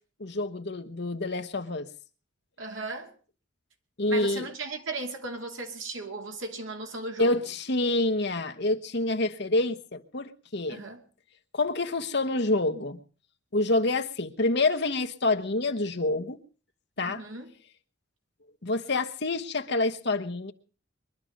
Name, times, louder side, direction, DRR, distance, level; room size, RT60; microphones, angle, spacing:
voice 1, 0.2-1.9 4.0-4.5 7.2-10.8 11.5-13.0 13.5-16.4 17.0-17.2 18.6-20.5, left 2 dB, 55° left, 1.2 m, -27 dB
voice 2, 2.6-3.1 4.1-7.4 10.7-11.0 17.0-17.5, right 2 dB, 70° right, 2.8 m, -36 dB
22.5 x 11.5 x 5.2 m
head